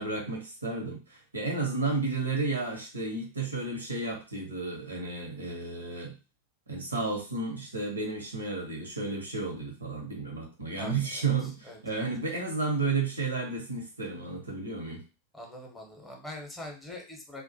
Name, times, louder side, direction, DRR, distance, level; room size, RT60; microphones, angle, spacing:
voice 1, 0.0-6.1 6.7-15.0, right 3 dB, 80° right, 1 dB, 0.8 m, -32 dB
voice 2, 10.8-12.0 15.3-17.4, left 1 dB, 10° left, 0 dB, 0.7 m, -44 dB
2.4 x 2.1 x 2.7 m, 0.31 s
figure-of-eight pair, 90°, 0 cm